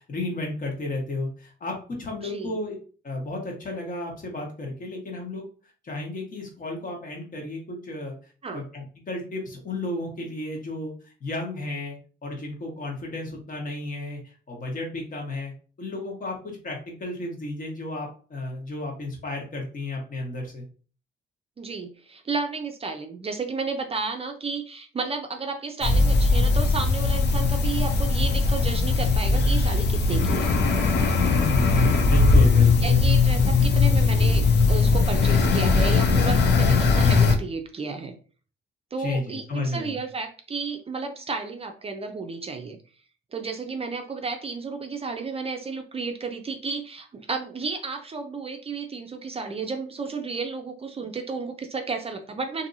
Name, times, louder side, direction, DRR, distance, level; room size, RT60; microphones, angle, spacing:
voice 1, 0.0-2.8 3.0-5.5 5.8-8.1 8.5-10.9 11.2-12.0 12.2-14.2 14.5-15.5 15.8-20.6 31.3-32.9 39.0-39.9, left 2 dB, 45° left, 0 dB, 1.2 m, -33 dB
voice 2, 2.2-2.6 8.4-8.7 21.6-30.5 32.8-38.1 38.9-42.8 43.3-52.7, right 4 dB, 30° right, 5 dB, 0.4 m, -32 dB
sound 1, 25.8-37.3, left 4 dB, 60° left, 0.6 m, -19 dB
2.8 x 2.6 x 2.6 m, 0.39 s
cardioid pair, 90°, 20 cm